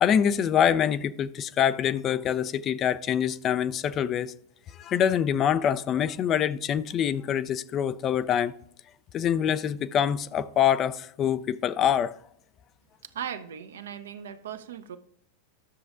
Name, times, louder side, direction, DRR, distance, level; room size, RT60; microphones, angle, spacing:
voice 1, 0.0-4.3 4.7-8.5 9.1-12.1, left 9 dB, 35° left, 0.4 m, -25 dB
voice 2, 13.0-15.0, right 8 dB, 70° right, 0.7 m, -38 dB
12.5 x 6.8 x 2.5 m
figure-of-eight pair, 90°, 0 cm